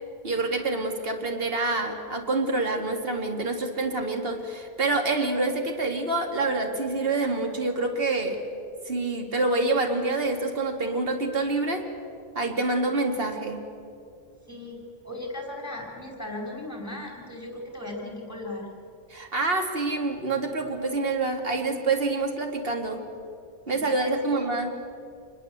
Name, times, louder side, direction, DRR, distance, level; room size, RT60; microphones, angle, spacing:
voice 1, 0.2-8.4 8.9-11.8 12.3-13.6 19.1-23.0 23.7-24.7, right 3 dB, 40° right, 4 dB, 2.6 m, -27 dB
voice 2, 14.5-14.8 15.0-18.7 23.7-24.5, left 1 dB, 10° left, 1 dB, 5.3 m, -37 dB
27.0 x 20.5 x 8.1 m, 2.4 s
omnidirectional pair, 1.5 m